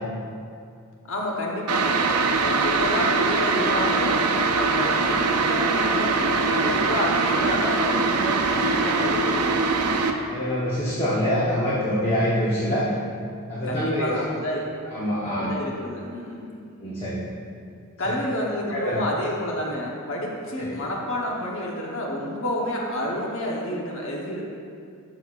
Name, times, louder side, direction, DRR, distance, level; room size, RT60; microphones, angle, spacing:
voice 1, 1.1-2.0 2.3-4.3 4.5-9.5 13.6-14.7 15.3-16.5 18.0-24.4, left 1 dB, 60° left, -2 dB, 1.1 m, -29 dB
sound 1, 1.7-10.1, right 4 dB, 90° right, 0.6 m, -22 dB
voice 2, 10.3-12.9 13.5-14.1 14.9-15.5 16.8-17.2 18.0-18.1 18.7-19.0 20.6-20.8, equal, 25° left, -8 dB, 1.0 m, -25 dB
12.0 x 6.4 x 2.5 m, 2.3 s
head